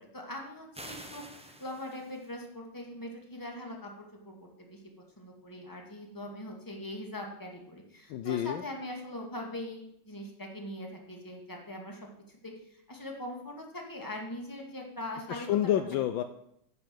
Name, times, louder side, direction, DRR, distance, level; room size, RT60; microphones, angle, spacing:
voice 1, 0.0-4.8 5.2-15.8, left 1 dB, 10° left, 1 dB, 1.9 m, -42 dB
sound 1, 0.7-2.3, right 1 dB, 10° right, 0.3 m, -47 dB
voice 2, 8.1-8.6 15.3-16.2, left 11 dB, 75° left, 10 dB, 1.3 m, -29 dB
9.9 x 6.8 x 7.7 m, 0.78 s
omnidirectional pair, 2.3 m